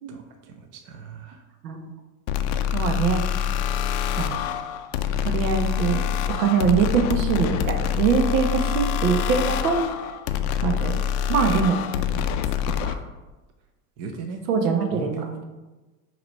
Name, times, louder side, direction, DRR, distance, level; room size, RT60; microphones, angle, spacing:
voice 1, 0.1-1.4 12.1-12.6 14.0-14.4 14.9-15.4, right 4 dB, 35° right, 4 dB, 0.6 m, -36 dB
sound 1, 2.3-13.0, left 9 dB, 50° left, 0.5 m, -26 dB
voice 2, 2.7-3.2 4.2-4.5 5.2-6.0 6.4-9.8 10.6-11.0 11.3-11.8 12.7-13.0 14.5-15.1, right 6 dB, 80° right, 4 dB, 1.1 m, -23 dB
6.0 x 3.0 x 5.3 m, 1.2 s
supercardioid pair, 135°, 47 cm